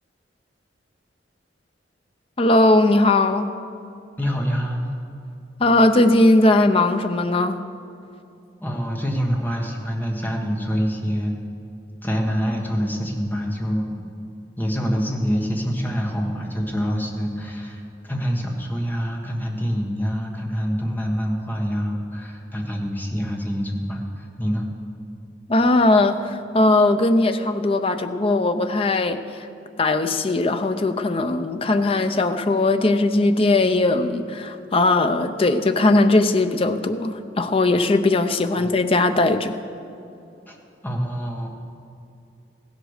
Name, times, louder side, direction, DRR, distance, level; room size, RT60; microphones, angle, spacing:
voice 1, 2.4-3.5 5.6-7.6 25.5-29.2 29.8-39.5, left 2 dB, 30° left, 8 dB, 0.5 m, -19 dB
voice 2, 4.2-4.9 8.6-11.3 12.0-14.1 14.6-24.7 38.5-38.7 40.5-40.6 40.8-41.5, equal, 10° left, 0 dB, 1.4 m, -26 dB
15.5 x 8.0 x 6.4 m, 2.7 s
head